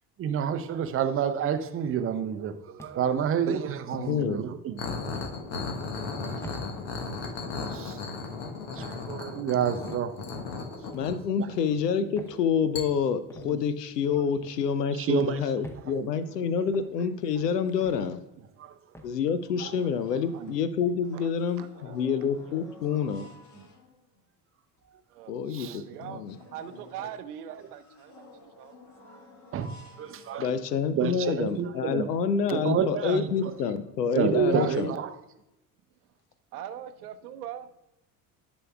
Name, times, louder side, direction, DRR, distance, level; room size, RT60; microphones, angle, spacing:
voice 1, 0.2-4.8 6.3-6.7 7.2-7.3 7.7-8.0 8.7-10.2 11.1-11.6 12.0-12.4 13.4-13.6 15.0-15.4 15.9-16.1 16.5-16.7 17.4-17.5 18.6-18.8 19.6-19.8 20.4-20.6 22.9-23.0 25.5-26.0 27.0-27.1 29.5-32.1 32.5-33.7 34.1-35.2, right 8 dB, 30° right, 10 dB, 0.6 m, -30 dB
sound 1, 2.8-3.2 3.9-4.2 5.2-5.4 6.4-6.7 7.6-7.8 8.8-9.0 9.9-10.1 10.9-11.2 12.2-12.4 13.3-13.5 14.4-14.7 15.6-15.9 16.7-16.9 17.8-18.1 18.9-19.2, equal, 5° left, 0.7 m, -46 dB
voice 2, 3.9-4.4 10.9-18.2 19.0-23.3 25.3-26.4 30.4-34.9, left 7 dB, 80° left, 12 dB, 0.6 m, -28 dB
sound 2, 4.8-11.8 12.7-12.8, left 4 dB, 55° left, 1.2 m, -35 dB
sound 3, 18.7-18.8 19.1-20.7 21.0-24.2 24.8-24.9 25.3-25.4 25.8-31.0 31.6-31.7 32.0-32.2 32.6-34.5, left 2 dB, 35° left, 1.7 m, -53 dB
voice 3, 21.6-22.0 25.1-25.3 25.8-26.2 26.5-29.0 36.5-37.7, right 10 dB, 70° right, 12 dB, 0.7 m, -41 dB
11.0 x 6.1 x 2.3 m, 0.93 s
figure-of-eight pair, 60°, 48 cm